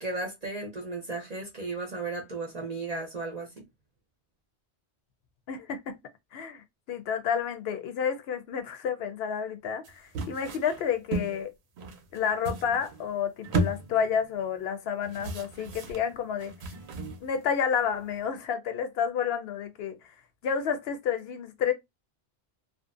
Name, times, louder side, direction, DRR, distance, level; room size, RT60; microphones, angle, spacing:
voice 1, 0.0-3.6, right 3 dB, 45° right, 0.6 m, -35 dB
voice 2, 5.5-6.0 6.3-11.5 12.1-16.5 17.2-20.0 20.4-21.7, left 7 dB, 70° left, 0.8 m, -30 dB
sound 1, 9.8-11.4 11.8-13.1 13.4-14.4 15.0-17.4 17.8-18.2, right 2 dB, 75° right, 0.8 m, -34 dB
2.6 x 2.0 x 2.4 m
omnidirectional pair, 1.1 m